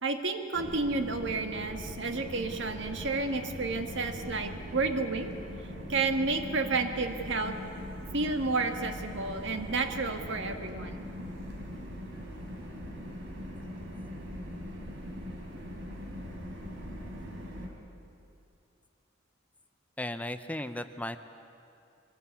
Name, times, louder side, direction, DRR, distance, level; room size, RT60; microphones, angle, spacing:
voice 1, 0.0-5.3 5.9-7.6 8.1-11.1, right 3 dB, 65° right, 5 dB, 1.8 m, -31 dB
sound 1, 0.5-17.7, equal, 90° right, 3.7 m, -41 dB
voice 2, 20.0-21.2, left 1 dB, 10° left, 9 dB, 0.6 m, -35 dB
23.5 x 19.0 x 8.4 m, 2.6 s
head